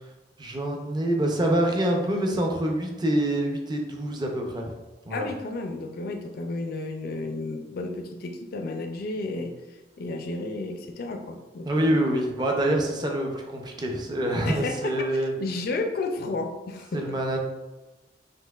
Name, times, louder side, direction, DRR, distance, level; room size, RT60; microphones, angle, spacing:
voice 1, 0.4-4.7 5.1-5.3 11.6-15.3 16.9-17.4, right 1 dB, 25° right, 1 dB, 0.5 m, -26 dB
voice 2, 5.1-9.5 10.0-12.1 14.4-15.1 15.4-17.0, left 2 dB, 55° left, 4 dB, 0.4 m, -32 dB
5.4 x 2.8 x 2.3 m, 1.1 s
head